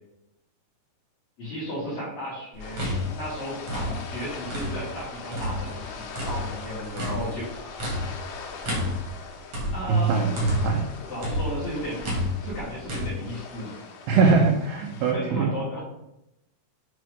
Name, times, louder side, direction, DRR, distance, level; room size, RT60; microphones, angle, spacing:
voice 1, 1.4-2.8 3.1-7.5 9.7-10.3 11.1-13.7 14.1-14.3 15.1-15.8, equal, 45° left, -8 dB, 2.3 m, -34 dB
sound 1, 2.5-5.0 5.3-10.9 11.2-13.1, left 1 dB, 55° right, 1.6 m, -31 dB
sound 2, 2.6-15.1, left 5 dB, 75° left, 3.4 m, -41 dB
voice 2, 9.9-10.8 14.1-15.5, right 5 dB, 90° right, 1 dB, 2.3 m, -22 dB
8.0 x 3.5 x 4.8 m, 0.86 s
omnidirectional pair, 5.7 m